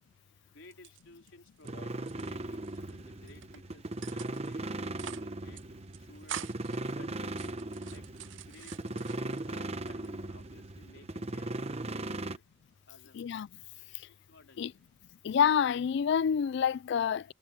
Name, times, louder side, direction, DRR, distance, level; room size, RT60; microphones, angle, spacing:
voice 1, 0.5-5.6 6.0-8.1 8.4-11.7 12.1-12.4 12.9-13.3 14.3-14.8, left 2 dB, 80° left, 3.8 m, -56 dB
sound 1, 0.6-1.7 2.0-2.9 3.3-3.6 4.0-4.5 4.8-5.3 5.5-5.6 5.9-6.8 7.3-9.5 9.9-10.5, right 10 dB, 70° right, 0.6 m, -45 dB
sound 2, 1.6-12.4, right 2 dB, 35° right, 0.9 m, -38 dB
voice 2, 13.1-13.5 13.9-14.1 14.6-14.7 15.2-17.3, left 7 dB, 60° left, 0.3 m, -28 dB
head